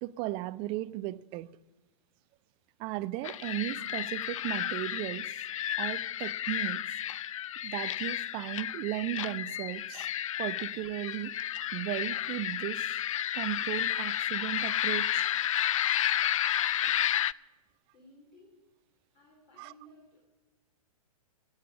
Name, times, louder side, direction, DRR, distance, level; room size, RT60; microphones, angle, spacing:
voice 1, 0.0-1.6 2.8-5.4 5.8-6.9 7.6-10.1 10.4-11.4 11.7-13.0 13.3-15.3 16.5-16.6 19.6-19.7, right 16 dB, 30° right, 0.5 m, -36 dB
sound 1, 3.2-17.3, left 11 dB, 60° left, 0.4 m, -32 dB
voice 2, 16.6-17.0 17.9-18.6 19.1-20.3, equal, 40° left, 4.0 m, -58 dB
15.0 x 8.8 x 8.7 m
figure-of-eight pair, 110°, 19 cm